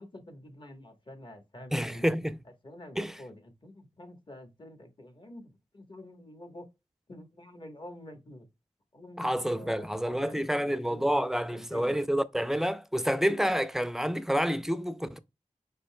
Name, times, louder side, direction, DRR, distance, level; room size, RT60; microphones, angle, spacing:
voice 1, 0.0-2.1 2.6-6.7 7.1-8.5 8.9-12.0, left 1 dB, 40° left, 1.2 m, -48 dB
voice 2, 1.7-2.4 3.0-3.1 9.2-15.2, equal, 5° right, 0.4 m, -28 dB
5.3 x 4.5 x 2.2 m
wide cardioid pair, 70°, 12 cm